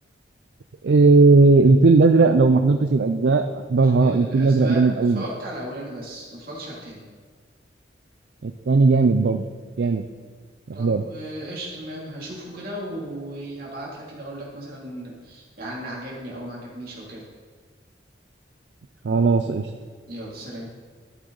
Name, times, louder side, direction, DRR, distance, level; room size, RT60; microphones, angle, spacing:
voice 1, 0.8-3.4 3.7-5.2 8.4-9.4 9.8-10.0 10.8-11.0 19.0-19.7, right 3 dB, 75° right, 8 dB, 0.4 m, -17 dB
voice 2, 3.7-7.0 10.7-17.2 20.1-20.7, right 1 dB, 55° right, -4 dB, 2.8 m, -36 dB
12.5 x 8.0 x 4.0 m, 1.5 s
head